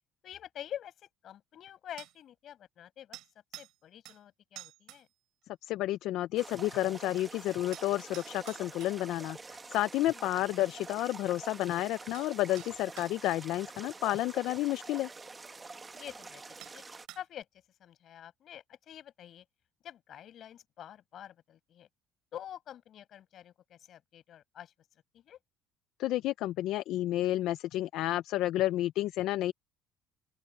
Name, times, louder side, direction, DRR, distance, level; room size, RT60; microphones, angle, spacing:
voice 1, 0.2-3.2 3.6-5.1 10.1-10.4 15.9-16.4 16.7-16.8 17.1-17.5 17.8-19.4 19.8-21.9 22.3-24.7 25.1-25.4, left 10 dB, 50° left, 6.6 m, -47 dB
sound 1, 2.0-2.2 3.1-3.8 4.1-4.2 4.6-5.0 7.7-9.0 11.6-11.7 12.1-12.3 12.6-13.1 14.8-14.9 15.9-16.0 16.6-16.8 17.1-17.4, right 16 dB, 70° right, 5.2 m, -49 dB
voice 2, 5.6-15.1 26.0-29.5, left 15 dB, 70° left, 0.5 m, -31 dB
sound 2, 6.4-17.1, right 3 dB, 20° right, 1.3 m, -47 dB
open air
cardioid pair, 120°, 0 cm